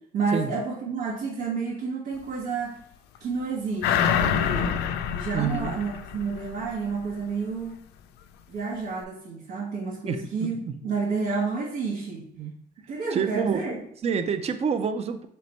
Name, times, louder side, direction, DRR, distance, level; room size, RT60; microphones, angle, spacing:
voice 1, 0.1-2.8 3.2-4.8 5.1-7.8 8.5-12.3 12.9-13.8, right 4 dB, 80° right, -5 dB, 1.1 m, -30 dB
sound 1, 3.8-6.7 7.1-7.2, left 8 dB, 80° left, 0.4 m, -26 dB
voice 2, 5.3-5.8 10.1-10.2 12.4-12.5 13.1-13.6 14.0-15.3, right 6 dB, 40° right, 9 dB, 0.5 m, -27 dB
3.4 x 3.2 x 4.0 m, 0.66 s
cardioid pair, 110°, 17 cm